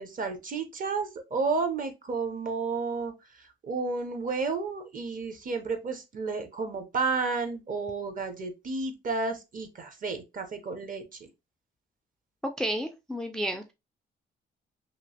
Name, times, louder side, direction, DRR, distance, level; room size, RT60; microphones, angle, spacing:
voice 1, 0.0-3.1 3.4-11.3, right 4 dB, 45° right, 0.7 m, -32 dB
voice 2, 12.6-13.7, equal, 5° left, 0.3 m, -31 dB
2.9 x 2.5 x 2.7 m
cardioid pair, 90°, 20 cm